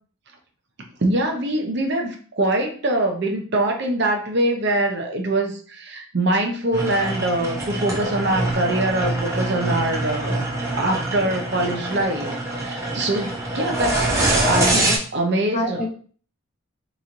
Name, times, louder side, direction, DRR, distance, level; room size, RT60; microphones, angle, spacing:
voice 1, 1.0-10.4 10.8-15.9, right 1 dB, 50° right, 3 dB, 0.6 m, -23 dB
sound 1, 6.7-15.0, right 2 dB, 15° right, 0.7 m, -24 dB
voice 2, 14.5-15.0 15.5-15.9, left 1 dB, 35° left, 1 dB, 0.5 m, -26 dB
4.0 x 3.0 x 2.5 m, 0.43 s
head